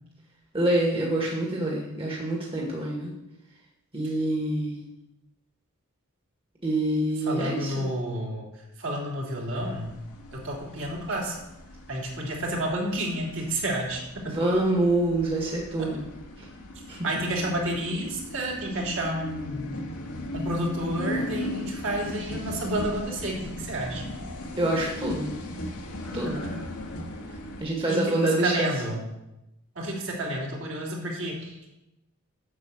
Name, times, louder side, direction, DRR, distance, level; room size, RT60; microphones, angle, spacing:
voice 1, 0.5-3.1 3.9-4.8 6.6-7.9 14.3-16.1 16.4-16.5 16.9-17.1 24.6-25.3 26.1-26.4 27.6-28.7, right 1 dB, 25° right, -3 dB, 1.7 m, -26 dB
voice 2, 7.2-8.5 8.8-10.0 10.3-11.4 11.9-14.3 17.0-19.8 20.3-24.0 27.9-29.0 29.7-31.7, right 1 dB, 60° right, -2 dB, 3.0 m, -30 dB
sound 1, 9.5-27.6, left 1 dB, 90° left, 2.1 m, -38 dB
8.6 x 6.7 x 7.7 m, 0.92 s
head